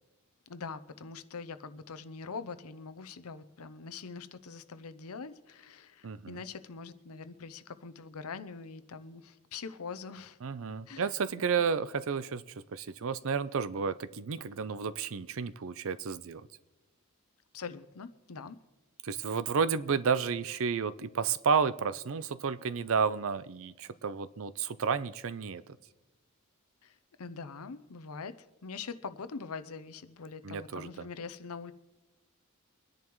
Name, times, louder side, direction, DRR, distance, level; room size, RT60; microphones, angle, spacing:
voice 1, 0.5-10.4 10.9-11.1 11.4-11.5 17.5-18.6 26.8-31.7, left 5 dB, 75° left, 13 dB, 0.7 m, -43 dB
voice 2, 6.0-6.4 10.4-12.4 12.7-16.5 19.0-25.8 30.4-31.1, right 6 dB, 65° right, 15 dB, 0.5 m, -31 dB
24.5 x 10.5 x 3.1 m, 1.1 s
head